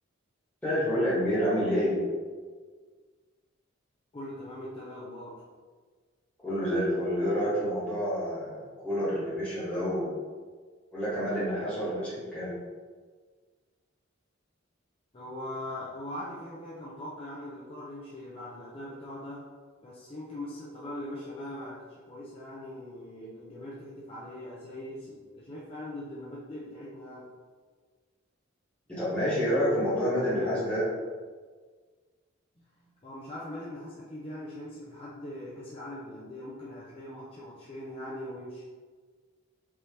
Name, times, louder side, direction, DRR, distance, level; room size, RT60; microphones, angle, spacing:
voice 1, 0.6-2.0 6.4-10.1 10.9-12.5 28.9-30.9, equal, 5° left, -11 dB, 1.5 m, -28 dB
voice 2, 4.1-5.4 15.1-19.5 19.8-27.3 32.6-38.7, left 1 dB, 30° left, -7 dB, 0.6 m, -41 dB
5.3 x 3.0 x 3.2 m, 1.5 s
head